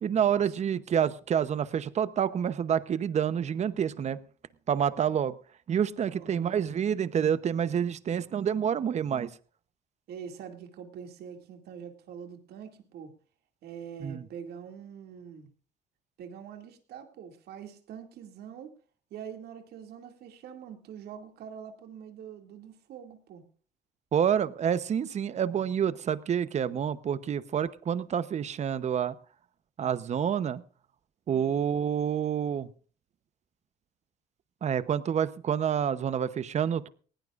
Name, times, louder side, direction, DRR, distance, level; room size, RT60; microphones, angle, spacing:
voice 1, 0.0-4.2 4.7-5.3 5.7-9.3 14.0-14.2 24.1-29.1 29.8-30.6 31.3-32.7 34.6-36.9, right 8 dB, 40° right, 14 dB, 0.9 m, -28 dB
voice 2, 6.1-6.6 10.1-13.1 13.6-15.5 16.2-18.7 19.1-23.4 31.3-31.6, right 7 dB, 70° right, 5 dB, 2.4 m, -44 dB
19.5 x 17.0 x 2.5 m, 0.41 s
cardioid pair, 110°, 17 cm